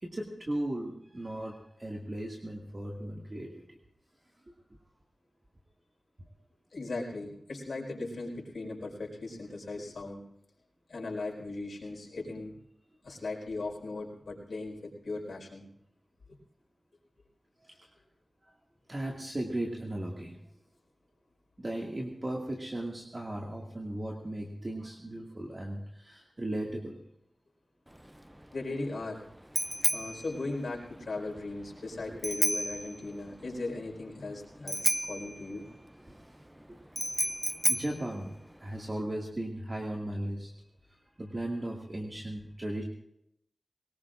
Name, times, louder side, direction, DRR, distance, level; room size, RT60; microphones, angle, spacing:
voice 1, 0.0-3.8 17.6-17.9 18.4-18.5 18.9-20.4 21.6-27.0 36.1-36.8 37.7-38.3 38.6-40.5 41.2-42.8, right 1 dB, 35° right, -2 dB, 2.1 m, -37 dB
voice 2, 6.7-10.2 10.9-12.6 13.0-15.7 28.5-29.2 29.9-35.7, left 2 dB, 80° left, 0 dB, 4.8 m, -38 dB
Bicycle bell, 27.9-39.0, equal, 10° right, 0.5 m, -34 dB
22.5 x 19.5 x 2.6 m, 0.75 s
wide cardioid pair, 80°, 0 cm